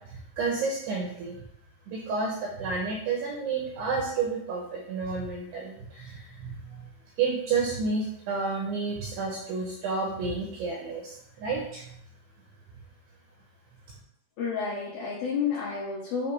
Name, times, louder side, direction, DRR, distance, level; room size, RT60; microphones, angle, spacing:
voice 1, 0.1-1.4 1.9-6.9 7.2-12.0, right 4 dB, 80° right, -1 dB, 2.4 m, -31 dB
voice 2, 14.4-16.3, left 5 dB, 70° left, -6 dB, 2.4 m, -30 dB
8.2 x 2.9 x 4.8 m, 0.72 s
omnidirectional pair, 5.9 m